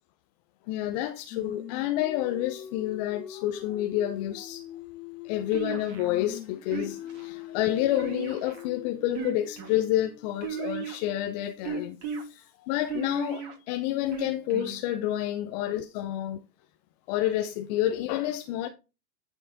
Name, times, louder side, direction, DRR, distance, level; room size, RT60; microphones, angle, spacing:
voice 1, 0.7-4.7 5.2-16.4 17.1-18.7, left 13 dB, 25° left, 0.5 m, -29 dB
Singing, 1.3-5.6 5.9-11.9, left 11 dB, 70° left, 1.5 m, -44 dB
sound 1, 5.5-6.1 6.7-7.2 8.0-8.7 9.1-9.8 10.4-11.1 11.6-12.2 12.9-13.5 14.1-14.8, right 6 dB, 45° right, 2.6 m, -35 dB
10.5 x 4.6 x 3.9 m
hypercardioid pair, 115°, 49 cm